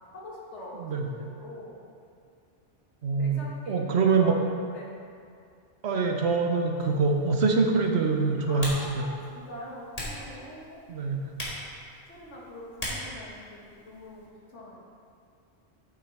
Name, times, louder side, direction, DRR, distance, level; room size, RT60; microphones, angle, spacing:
voice 1, 0.1-1.8 3.2-3.9 4.2-4.9 8.4-10.9 12.1-14.8, left 1 dB, 90° left, -4 dB, 1.9 m, -44 dB
voice 2, 3.0-4.3 5.8-9.2 10.9-11.3, right 4 dB, 70° right, 2 dB, 1.1 m, -25 dB
Typing, 6.8-14.3, left 1 dB, 35° left, 1.8 m, -41 dB
9.0 x 7.7 x 3.4 m, 2.4 s
omnidirectional pair, 1.2 m